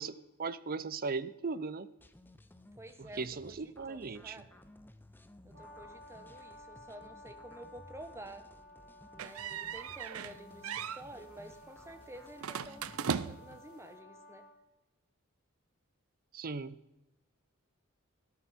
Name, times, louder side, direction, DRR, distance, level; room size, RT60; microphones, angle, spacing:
voice 1, 0.0-1.9 3.0-4.4 16.3-16.8, right 4 dB, 45° right, 15 dB, 0.6 m, -38 dB
sound 1, 2.0-13.0, left 1 dB, 10° left, 0.6 m, -58 dB
voice 2, 2.8-4.6 5.4-8.5 9.1-14.4, right 1 dB, 15° right, 8 dB, 1.0 m, -51 dB
Brass instrument, 5.5-14.6, left 1 dB, 70° right, 3.6 m, -55 dB
sound 2, 9.2-10.4 10.6-11.0 12.4-13.6, right 7 dB, 90° right, 0.6 m, -37 dB
13.0 x 12.5 x 4.3 m, 0.88 s
head